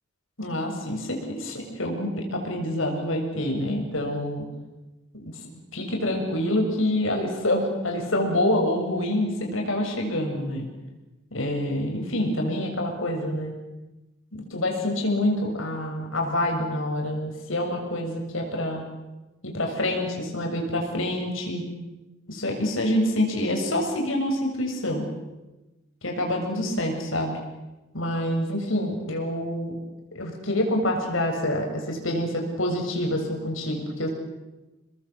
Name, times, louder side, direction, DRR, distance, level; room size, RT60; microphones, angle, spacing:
voice 1, 0.4-4.5 5.2-5.3 5.7-10.7 11.3-13.5 14.3-18.8 19.4-21.6 22.3-25.1 26.0-27.3 27.9-29.7 30.1-34.1, left 1 dB, 75° left, 1 dB, 7.3 m, -26 dB
29.0 x 21.0 x 8.0 m, 1.1 s
head